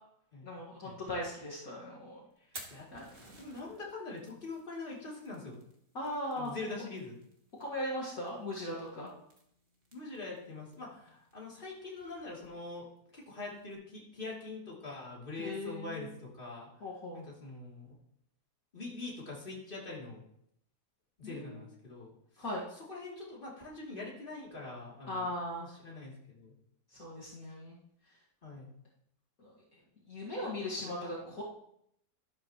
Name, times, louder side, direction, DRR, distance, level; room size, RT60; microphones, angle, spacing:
voice 1, 0.4-2.2 2.9-3.1 5.9-6.5 7.6-9.1 15.4-16.1 16.8-17.2 21.2-21.6 22.4-22.6 25.1-25.7 26.9-27.8 29.4-29.5 30.1-31.4, left 1 dB, 60° left, -5 dB, 2.2 m, -38 dB
Fire, 2.3-13.7, right 2 dB, 35° right, 2.0 m, -57 dB
voice 2, 2.4-2.9 3.2-5.6 6.3-7.2 9.9-12.9 13.1-16.7 17.1-17.9 18.7-20.2 21.2-22.4 22.7-25.3 25.7-26.5 28.4-28.7 30.4-30.5 30.8-31.4, left 3 dB, 30° left, -4 dB, 3.1 m, -44 dB
12.5 x 12.0 x 3.0 m, 0.73 s
omnidirectional pair, 1.8 m